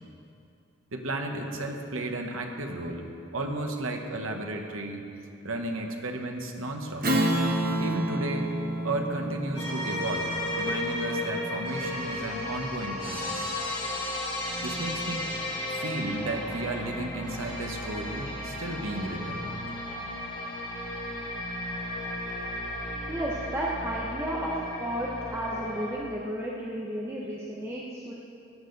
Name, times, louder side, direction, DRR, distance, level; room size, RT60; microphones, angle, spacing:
voice 1, 0.9-5.0 5.4-7.1 7.8-8.5 8.8-13.5 14.6-15.4 15.8-19.5, right 2 dB, 80° right, 3 dB, 1.2 m, -34 dB
Strum, 7.0-11.9, right 1 dB, 45° right, 1.1 m, -29 dB
sound 1, 9.6-25.9, left 1 dB, 25° left, 2.9 m, -34 dB
voice 2, 23.1-24.5 24.8-28.1, equal, 10° right, -5 dB, 0.8 m, -33 dB
15.5 x 9.7 x 4.0 m, 2.6 s
head